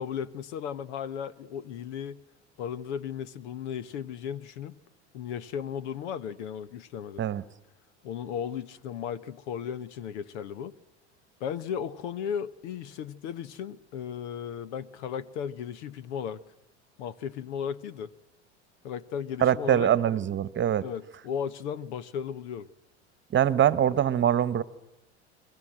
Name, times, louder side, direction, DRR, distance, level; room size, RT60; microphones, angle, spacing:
voice 1, 0.0-2.2 2.6-4.7 5.1-7.2 8.0-10.7 11.4-16.4 17.0-18.1 18.8-19.9 20.8-22.7, left 8 dB, 75° left, 1.3 m, -35 dB
voice 2, 19.4-20.8 23.3-24.6, right 10 dB, 35° right, 1.3 m, -23 dB
30.0 x 21.5 x 7.6 m
hypercardioid pair, 85°, 35 cm